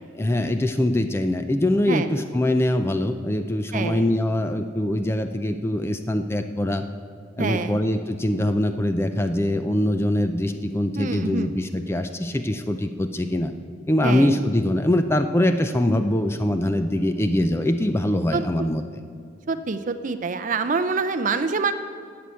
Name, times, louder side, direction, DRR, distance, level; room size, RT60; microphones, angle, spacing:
voice 1, 0.1-6.8 7.4-13.5 13.9-18.8, left 1 dB, 10° left, 8 dB, 0.4 m, -23 dB
voice 2, 3.7-4.2 7.4-7.8 11.0-11.5 14.0-14.4 18.3-18.4 19.5-21.7, right 4 dB, 40° right, 9 dB, 0.5 m, -26 dB
11.0 x 7.7 x 8.4 m, 2.3 s
head